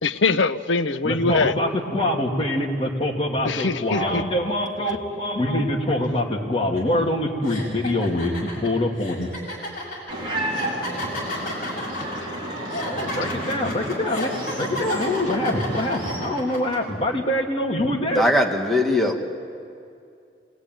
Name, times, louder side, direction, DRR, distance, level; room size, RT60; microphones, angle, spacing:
voice 1, 0.0-1.5 3.4-4.2, left 3 dB, 90° left, 11 dB, 0.8 m, -22 dB
voice 2, 1.0-8.3 8.6-9.3 11.0-11.1 12.8-14.3 14.6-18.2, left 1 dB, 30° left, 0 dB, 2.7 m, -24 dB
sound 1, 6.8-6.9 7.4-16.8, left 1 dB, 45° left, 6.6 m, -32 dB
sound 2, 10.1-16.2, right 1 dB, 30° right, 4.6 m, -31 dB
voice 3, 18.1-19.3, left 1 dB, ahead, 0 dB, 1.9 m, -20 dB
26.5 x 19.5 x 9.3 m, 2.5 s
head